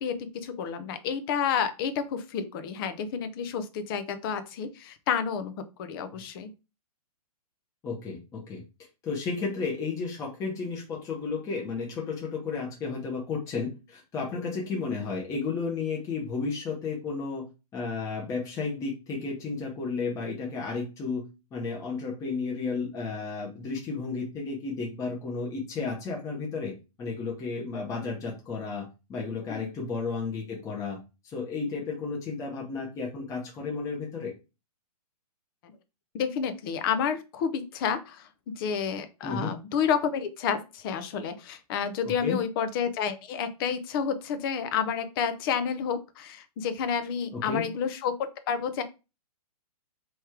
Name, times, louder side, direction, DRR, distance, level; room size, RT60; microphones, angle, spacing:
voice 1, 0.0-5.5 5.8-6.5 29.5-29.7 35.6-35.7 36.1-48.1 48.5-48.8, left 7 dB, 35° left, 11 dB, 0.7 m, -30 dB
voice 2, 7.8-8.6 9.0-17.4 17.7-21.2 21.5-31.0 31.2-34.3 39.2-39.6 42.0-42.4 47.3-47.7, left 4 dB, 15° left, -2 dB, 1.1 m, -33 dB
3.5 x 3.1 x 4.6 m, 0.29 s
hypercardioid pair, 140°, 20 cm